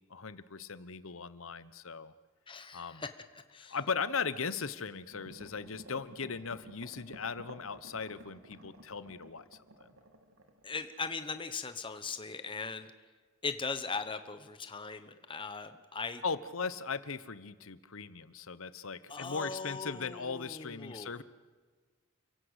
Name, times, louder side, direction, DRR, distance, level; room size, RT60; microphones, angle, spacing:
voice 1, 0.1-2.1 2.7-3.0 3.6-9.4 9.8-9.9 16.2-21.2, left 5 dB, 70° left, 15 dB, 1.0 m, -38 dB
voice 2, 2.5-3.8 10.6-12.9 13.4-16.2 19.1-21.1, left 4 dB, 25° left, 9 dB, 1.1 m, -39 dB
sound 1, 5.1-11.4 11.8-11.9, right 1 dB, 70° right, 2.7 m, -54 dB
29.5 x 16.5 x 8.2 m, 1.5 s
head